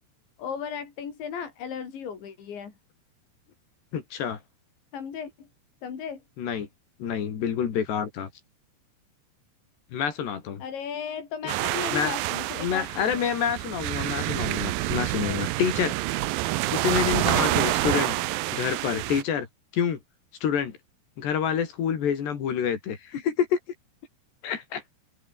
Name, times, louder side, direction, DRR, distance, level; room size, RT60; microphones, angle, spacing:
voice 1, 0.4-2.7 4.9-5.5 5.8-6.2 10.6-13.3 14.9-15.4 17.4-17.7, left 7 dB, 85° left, 6.7 m, -36 dB
voice 2, 3.9-4.4 6.4-6.7 7.0-8.3 9.9-10.6 11.9-12.1 12.6-16.0 16.7-18.2 18.5-19.5 19.7-20.0 20.4-20.8 21.2-23.6 24.4-24.8, left 8 dB, 70° left, 5.3 m, -27 dB
sound 1, 11.5-19.2, right 18 dB, 85° right, 2.0 m, -27 dB
open air
omnidirectional pair, 5.1 m